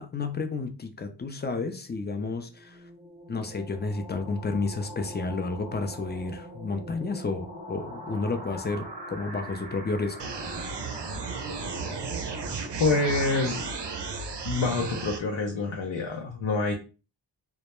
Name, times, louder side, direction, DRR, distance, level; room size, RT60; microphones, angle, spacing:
voice 1, 0.0-2.8 3.3-10.2, left 3 dB, 25° left, 0.3 m, -31 dB
sound 1, 2.4-14.8, equal, 20° right, 0.6 m, -43 dB
sound 2, 10.2-15.2, right 4 dB, 60° right, 0.5 m, -34 dB
voice 2, 12.8-13.7 14.4-16.7, left 3 dB, 70° left, 0.6 m, -26 dB
2.2 x 2.0 x 2.9 m
wide cardioid pair, 80°, 46 cm